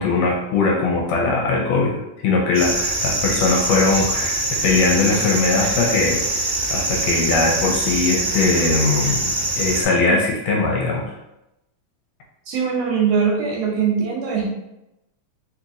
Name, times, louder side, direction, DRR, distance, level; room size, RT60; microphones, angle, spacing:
voice 1, 0.0-9.3 9.6-11.1, left 3 dB, 75° left, -1 dB, 1.8 m, -20 dB
sound 1, 2.5-9.8, right 2 dB, 55° right, 1.2 m, -23 dB
voice 2, 12.5-14.5, right 6 dB, 75° right, -1 dB, 1.7 m, -21 dB
4.2 x 2.9 x 2.4 m, 0.88 s
omnidirectional pair, 3.3 m